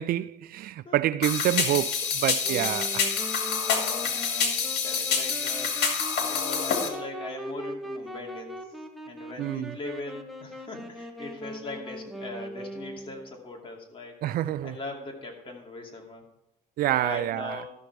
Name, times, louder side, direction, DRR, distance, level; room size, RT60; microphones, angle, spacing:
voice 1, 0.0-3.1 9.4-9.8 14.2-14.8 16.8-17.6, right 13 dB, 60° right, 0.4 m, -27 dB
sound 1, 1.2-6.9, left 6 dB, 80° left, 2.1 m, -27 dB
Wind instrument woodwind instrument, 2.4-13.3, equal, ahead, 1.1 m, -40 dB
voice 2, 3.8-4.5 4.8-5.8 6.2-8.6 9.1-14.2 14.6-16.2 17.0-17.7, left 3 dB, 30° left, 2.4 m, -40 dB
13.5 x 6.5 x 4.6 m
cardioid pair, 110°, 17 cm